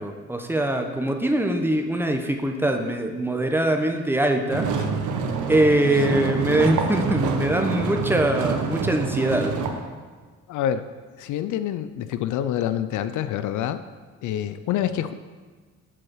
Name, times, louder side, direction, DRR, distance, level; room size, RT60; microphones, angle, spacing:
voice 1, 0.0-4.7 5.5-9.5, right 1 dB, 5° right, 4 dB, 0.8 m, -23 dB
sound 1, 4.5-9.7, right 5 dB, 80° right, 0.9 m, -26 dB
voice 2, 10.5-10.9 11.2-13.8 14.2-15.1, left 10 dB, 80° left, 12 dB, 0.5 m, -27 dB
7.5 x 4.8 x 6.3 m, 1.4 s
cardioid pair, 90°, 30 cm